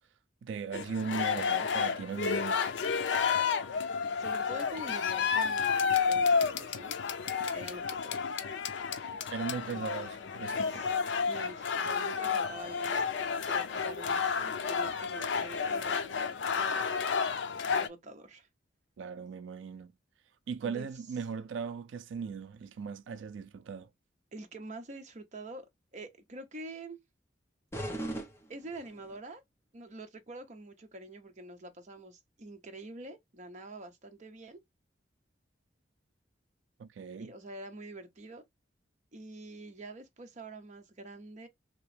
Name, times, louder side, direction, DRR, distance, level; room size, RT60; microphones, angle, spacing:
voice 1, 0.4-2.6 9.3-10.9 19.0-19.9 20.5-23.9 36.8-37.3, right 6 dB, 90° right, 0.3 m, -38 dB
sound 1, 0.7-17.9, left 6 dB, 75° left, 0.5 m, -31 dB
voice 2, 4.0-7.0 7.5-8.2 9.7-10.1 10.6-10.9 11.3-16.3 16.5-17.1 17.7-18.5 20.6-20.9 24.3-25.7 25.9-27.0 28.5-29.4 29.7-34.6 37.1-38.4 39.1-41.5, right 2 dB, 40° right, 0.7 m, -46 dB
sound 2, 27.7-29.2, right 1 dB, 15° left, 0.7 m, -39 dB
2.9 x 2.9 x 3.1 m
head